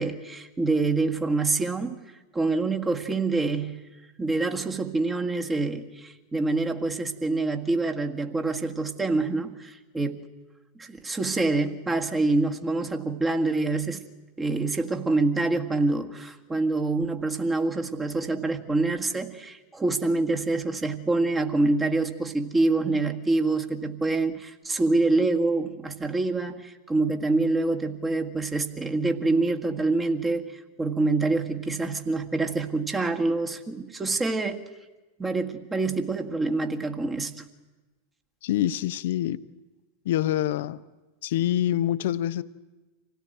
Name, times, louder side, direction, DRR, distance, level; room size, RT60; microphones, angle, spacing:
voice 1, 0.0-2.0 2.3-3.8 4.2-10.3 10.8-14.0 14.4-30.4 30.8-34.6 35.2-37.5, right 3 dB, 15° right, 4 dB, 1.8 m, -26 dB
voice 2, 38.4-39.4 40.0-40.8 41.2-42.4, left 12 dB, 55° left, 15 dB, 0.7 m, -25 dB
26.0 x 17.5 x 9.1 m, 1.2 s
figure-of-eight pair, 90°, 0 cm